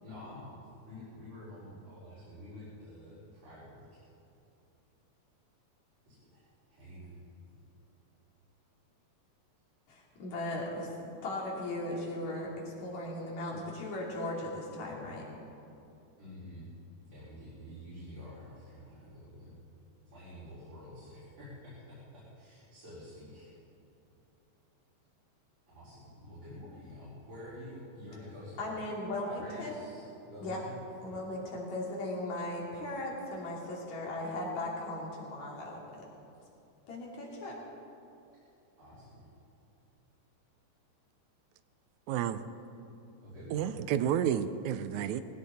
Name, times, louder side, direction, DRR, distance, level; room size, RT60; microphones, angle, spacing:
voice 1, 0.0-0.6 0.8-4.0 6.0-7.1 7.5-7.6 16.2-16.7 17.1-19.6 20.1-23.5 25.7-28.7 29.2-30.7 31.1-31.2 38.8-39.3 43.2-44.0, left 1 dB, 60° right, -13 dB, 6.3 m, -48 dB
voice 2, 9.9-10.9 11.2-15.3 28.6-29.7 30.4-30.6 31.0-36.0 36.9-37.6, left 1 dB, 65° left, -3 dB, 4.1 m, -37 dB
voice 3, 42.1-42.4 43.5-45.2, right 10 dB, 80° right, 12 dB, 1.9 m, -30 dB
20.0 x 17.0 x 4.3 m, 2.8 s
omnidirectional pair, 3.5 m